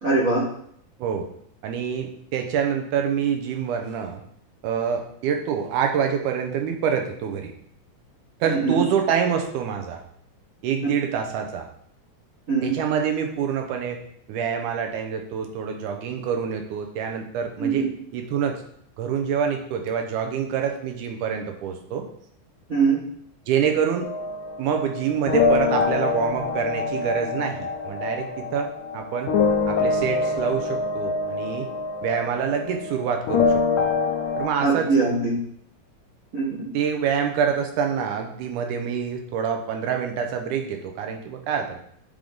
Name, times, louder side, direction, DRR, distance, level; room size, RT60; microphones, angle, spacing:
voice 1, 0.0-0.4 8.5-8.8 12.5-12.7 17.6-17.9 22.7-23.0 34.6-35.4 36.3-36.7, right 4 dB, 45° right, -6 dB, 1.0 m, -22 dB
voice 2, 1.6-4.2 4.6-7.5 8.4-10.0 10.6-11.7 12.6-14.0 14.3-17.9 18.1-18.6 19.0-22.0 23.5-24.1 24.6-29.3 29.7-31.7 32.0-33.6 34.4-35.1 36.7-41.8, right 7 dB, 85° right, 3 dB, 2.2 m, -26 dB
sound 1, 24.0-34.5, left 4 dB, 75° left, 1.8 m, -25 dB
9.9 x 3.8 x 3.6 m, 0.67 s
omnidirectional pair, 3.7 m